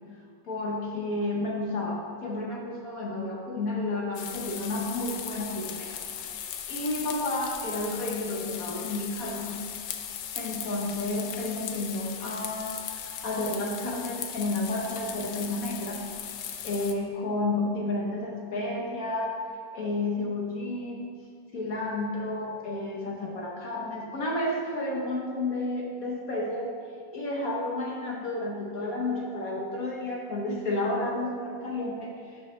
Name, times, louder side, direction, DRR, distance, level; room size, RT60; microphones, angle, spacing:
voice 1, 0.4-6.0 6.7-9.6 10.3-16.0 16.6-19.3 19.7-21.1 21.5-26.7 27.1-32.5, left 2 dB, 55° left, -2 dB, 1.3 m, -31 dB
sound 1, 4.1-16.9, left 9 dB, 75° left, 1.3 m, -38 dB
12.5 x 6.8 x 3.2 m, 2.2 s
omnidirectional pair, 2.1 m